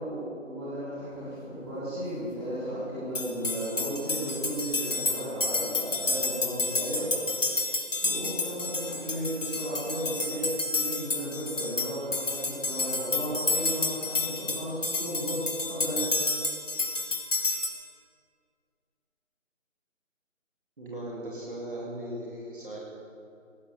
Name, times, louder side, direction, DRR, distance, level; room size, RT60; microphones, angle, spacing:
voice 1, 0.0-7.1 8.0-16.1, equal, 20° right, -13 dB, 4.0 m, -34 dB
sound 1, 3.1-17.7, left 3 dB, 70° left, 2.5 m, -30 dB
voice 2, 20.8-22.8, right 1 dB, 40° right, -4 dB, 2.7 m, -38 dB
17.0 x 9.4 x 7.1 m, 2.5 s
figure-of-eight pair, 170°, 39 cm